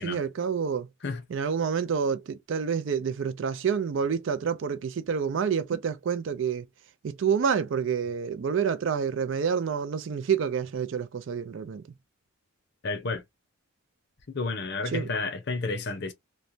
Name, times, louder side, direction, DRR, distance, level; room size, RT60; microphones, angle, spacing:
voice 1, 0.0-0.9 1.3-6.7 7.0-11.8 14.9-15.1, right 6 dB, 55° right, 0.3 m, -28 dB
voice 2, 12.8-13.2 14.3-16.1, left 3 dB, 50° left, 0.6 m, -31 dB
3.1 x 2.1 x 2.5 m
head